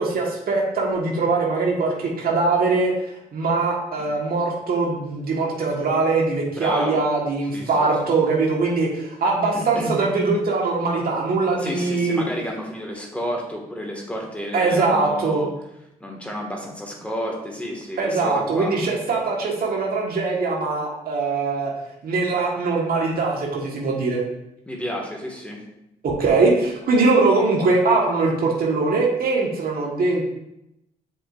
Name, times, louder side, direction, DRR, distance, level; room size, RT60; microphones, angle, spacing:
voice 1, 0.0-12.2 14.5-15.4 18.0-21.7 22.0-24.2 26.0-30.3, right 3 dB, 65° right, -2 dB, 1.6 m, -22 dB
voice 2, 6.5-7.0 7.5-7.9 9.5-10.0 11.6-15.5 16.0-18.7 24.7-25.7, equal, 10° left, -1 dB, 2.0 m, -31 dB
7.5 x 5.1 x 2.6 m, 0.85 s
supercardioid pair, 50°, 17 cm